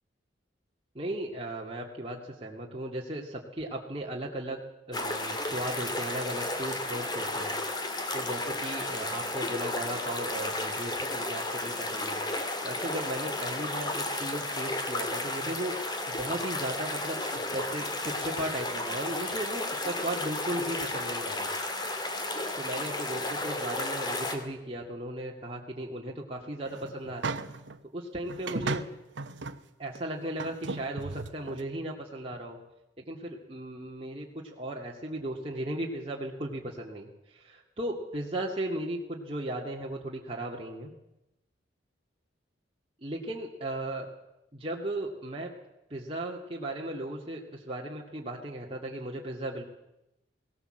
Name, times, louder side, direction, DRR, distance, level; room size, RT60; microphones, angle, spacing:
voice 1, 0.9-4.6 4.9-7.5 8.1-12.2 12.6-15.7 16.1-21.5 22.6-27.4 27.9-28.8 29.8-32.6 33.0-40.9 43.0-44.1 44.5-45.5 45.9-49.7, right 1 dB, 30° right, -2 dB, 2.0 m, -36 dB
sound 1, 4.9-24.4, left 2 dB, 25° left, 2.4 m, -33 dB
sound 2, 26.6-27.8 28.3-29.6 29.9-30.0 30.4-31.6, right 3 dB, 75° right, 1.0 m, -36 dB
18.5 x 18.5 x 7.7 m, 0.92 s
head